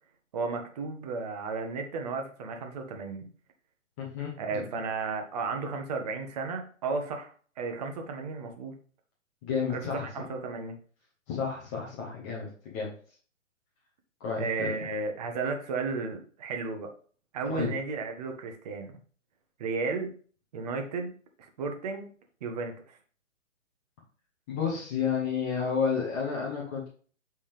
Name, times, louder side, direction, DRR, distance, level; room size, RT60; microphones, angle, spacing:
voice 1, 0.3-3.3 4.4-8.7 9.7-10.7 14.4-16.9 17.3-19.0 19.6-20.2 20.5-22.1 22.4-23.0, right 4 dB, 30° right, 4 dB, 0.9 m, -34 dB
voice 2, 4.0-4.6 9.4-10.3 11.3-12.9 14.2-14.7 17.5-17.7 24.5-26.9, left 6 dB, 10° left, -4 dB, 0.6 m, -31 dB
8.4 x 3.6 x 3.4 m, 0.43 s
figure-of-eight pair, 140°, 40 cm